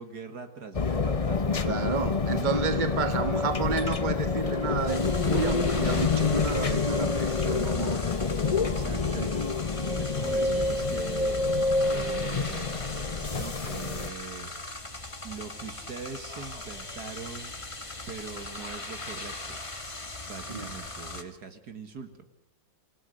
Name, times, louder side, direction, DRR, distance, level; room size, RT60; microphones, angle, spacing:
voice 1, 0.0-2.6 8.6-9.3 9.8-11.5 11.9-12.7 13.3-14.5 15.2-17.6 18.1-19.6 20.2-22.3, right 5 dB, 55° right, 8 dB, 2.2 m, -42 dB
sound 1, 0.7-14.1, left 4 dB, 50° left, 0.4 m, -27 dB
voice 2, 1.6-8.0 9.1-9.4 20.5-20.7, right 4 dB, 25° right, 9 dB, 1.7 m, -31 dB
round sprinkler, 4.9-21.2, left 2 dB, 20° left, 1.3 m, -40 dB
27.5 x 18.0 x 6.4 m, 0.76 s
omnidirectional pair, 2.1 m